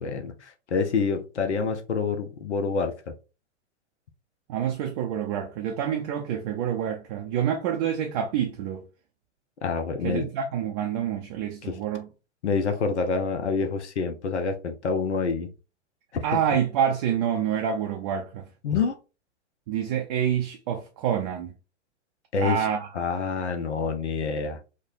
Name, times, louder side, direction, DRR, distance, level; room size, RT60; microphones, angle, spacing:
voice 1, 0.0-3.1 9.6-10.3 11.6-11.8 12.4-15.5 18.6-18.9 22.3-22.7 22.9-24.6, left 5 dB, 75° left, 0.6 m, -27 dB
voice 2, 4.5-8.8 10.0-12.1 16.2-18.5 19.7-21.5 22.4-22.9, right 9 dB, 35° right, 0.4 m, -27 dB
3.1 x 2.1 x 2.6 m
figure-of-eight pair, 95°, 35 cm